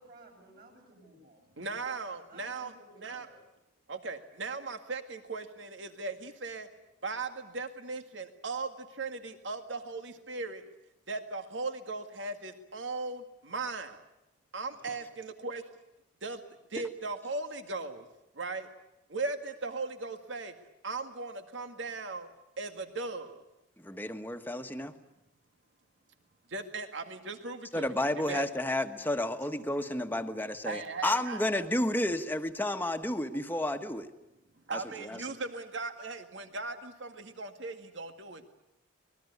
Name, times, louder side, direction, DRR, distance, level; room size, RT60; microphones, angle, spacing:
voice 1, 0.0-1.4 1.8-3.4 14.7-15.0, right 2 dB, 55° right, 1 dB, 8.0 m, -56 dB
voice 2, 1.6-2.7 3.0-3.3 3.9-6.7 7.0-10.6 11.1-14.0 14.5-15.7 16.2-16.4 16.7-18.1 18.3-18.7 19.1-20.5 20.8-22.3 22.6-23.4 26.5-28.4 30.7-31.7 34.7-38.5, right 3 dB, 85° right, 7 dB, 1.9 m, -38 dB
voice 3, 23.8-24.9 27.7-34.1 35.0-35.2, left 1 dB, 10° left, 7 dB, 1.3 m, -31 dB
25.0 x 20.5 x 9.5 m, 0.90 s
head